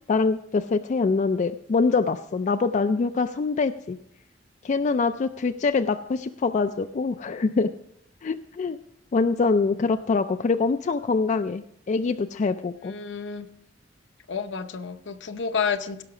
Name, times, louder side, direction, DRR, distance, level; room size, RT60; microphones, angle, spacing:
voice 1, 0.1-4.0 4.6-7.7 8.2-8.8 9.1-12.9, left 4 dB, 40° left, 9 dB, 0.3 m, -24 dB
voice 2, 12.8-13.5 14.3-16.0, left 6 dB, 75° left, 8 dB, 0.8 m, -30 dB
16.5 x 6.1 x 4.9 m, 0.76 s
head